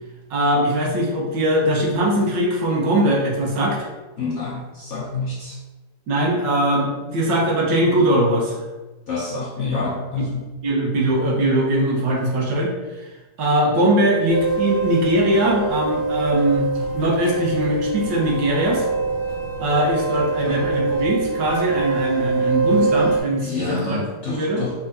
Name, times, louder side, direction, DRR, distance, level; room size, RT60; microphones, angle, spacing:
voice 1, 0.3-3.9 6.1-8.7 9.6-9.7 10.6-13.1 13.4-16.7 16.9-18.9 19.6-24.0 24.3-24.6, right 1 dB, 80° right, -3 dB, 1.7 m, -21 dB
voice 2, 4.2-5.6 9.1-10.4 20.5-20.6 23.4-24.7, left 4 dB, 60° left, -5 dB, 0.8 m, -28 dB
sound 1, 14.3-23.2, right 4 dB, 20° left, 0.8 m, -24 dB
4.8 x 3.9 x 2.7 m, 1.2 s
omnidirectional pair, 1.9 m